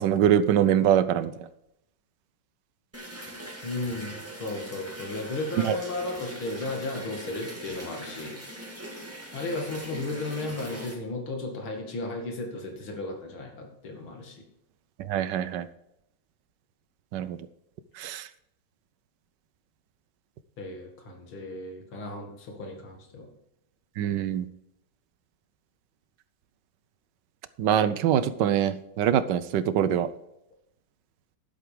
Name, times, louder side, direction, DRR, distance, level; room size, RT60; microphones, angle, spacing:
voice 1, 0.0-1.3 5.6-5.8 15.0-15.7 17.1-17.4 18.0-18.3 24.0-24.5 27.6-30.1, right 10 dB, 70° right, 13 dB, 1.1 m, -24 dB
sound 1, 2.9-10.9, right 1 dB, 5° right, 1.8 m, -41 dB
voice 2, 3.6-8.4 9.3-14.5 20.6-23.3, left 2 dB, 70° left, 2 dB, 3.0 m, -34 dB
11.0 x 8.1 x 5.1 m, 0.82 s
omnidirectional pair, 2.4 m